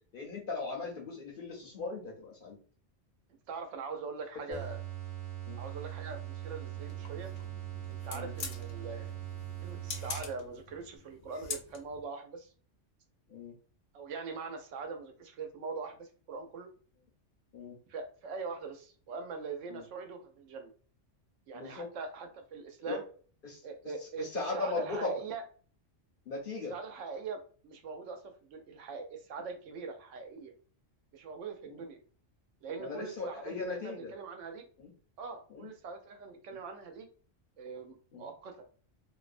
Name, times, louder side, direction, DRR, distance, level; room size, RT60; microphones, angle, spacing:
voice 1, 0.0-2.6 4.5-4.6 5.5-5.6 8.1-8.3 13.3-13.5 17.5-17.8 19.7-19.8 21.5-21.9 22.9-23.0 23.4-23.6 24.2-25.1 26.3-26.8 31.7-31.8 32.8-34.1 34.8-34.9 35.5-35.7 38.1-38.3, left 3 dB, 55° left, 0 dB, 0.7 m, -38 dB
voice 2, 3.5-4.8 5.6-7.3 7.9-9.1 9.6-12.5 13.9-16.7 17.9-20.7 21.5-23.0 23.6-24.3 24.5-25.4 26.7-30.5 31.1-32.0 32.6-34.7 35.2-37.1 37.6-38.7, right 4 dB, 75° right, 5 dB, 0.9 m, -42 dB
sound 1, 4.5-10.6, right 13 dB, 45° right, 1.0 m, -41 dB
sound 2, 6.7-12.0, left 5 dB, 80° left, 0.9 m, -45 dB
2.5 x 2.1 x 2.4 m, 0.41 s
omnidirectional pair, 1.3 m